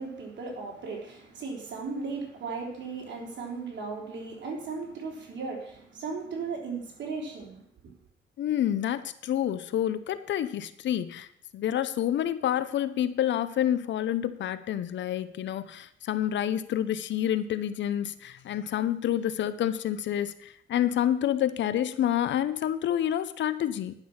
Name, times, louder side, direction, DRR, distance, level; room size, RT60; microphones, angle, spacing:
voice 1, 0.0-7.6, right 4 dB, 65° right, 0 dB, 3.7 m, -36 dB
voice 2, 8.4-11.3 11.5-23.9, left 11 dB, 70° left, 14 dB, 0.8 m, -28 dB
10.5 x 6.1 x 7.2 m, 0.70 s
cardioid pair, 90°, 20 cm